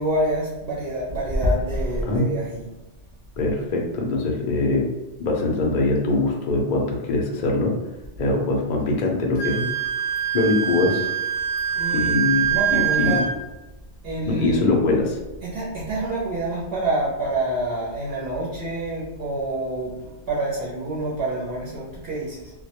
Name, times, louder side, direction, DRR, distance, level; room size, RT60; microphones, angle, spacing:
voice 1, 0.0-2.6 11.7-12.1 12.5-13.3 14.0-14.8 15.4-22.5, right 1 dB, 65° right, -6 dB, 0.8 m, -27 dB
voice 2, 3.4-4.9 5.2-7.7 8.2-9.6 10.3-11.1 11.9-13.3 14.3-15.2, left 2 dB, 60° left, 0 dB, 0.5 m, -22 dB
Wind instrument woodwind instrument, 9.4-13.3, right 9 dB, 80° left, 0.9 m, -24 dB
2.2 x 2.1 x 2.8 m, 1.0 s
omnidirectional pair, 1.2 m